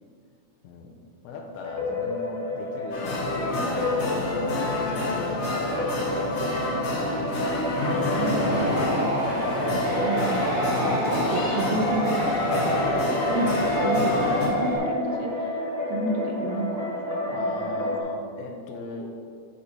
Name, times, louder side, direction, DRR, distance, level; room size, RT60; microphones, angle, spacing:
voice 1, 1.2-8.0 17.3-19.2, left 3 dB, 85° left, 2 dB, 2.6 m, -41 dB
sound 1, 1.6-18.0, left 2 dB, 15° left, 0.5 m, -31 dB
sound 2, 2.9-14.5, left 1 dB, 55° left, 1.5 m, -28 dB
sound 3, 8.1-14.8, right 1 dB, 55° right, 1.7 m, -28 dB
voice 2, 8.1-9.4 10.0-10.6 11.1-13.0 13.3-15.3 15.9-17.8, right 1 dB, 75° right, 2 dB, 2.5 m, -31 dB
9.6 x 4.9 x 4.3 m, 2.1 s
omnidirectional pair, 4.4 m